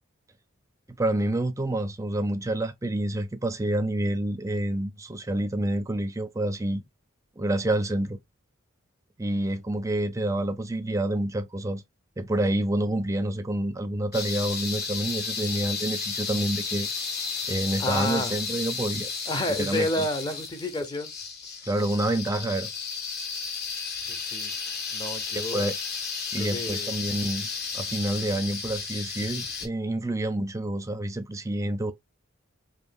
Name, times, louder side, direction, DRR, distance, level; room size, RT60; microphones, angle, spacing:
voice 1, 1.0-6.8 7.4-8.2 9.2-11.8 12.2-16.9 17.5-19.1 19.6-20.1 21.6-22.7 25.3-25.8 26.3-27.5 27.7-31.9, right 1 dB, 15° right, 0.5 m, -28 dB
sound 1, 14.1-29.7, left 5 dB, 50° left, 1.3 m, -33 dB
voice 2, 17.8-18.3 19.3-21.1 24.1-24.5 24.9-25.6 26.4-26.9, left 1 dB, 20° left, 0.7 m, -30 dB
4.8 x 2.8 x 2.4 m
head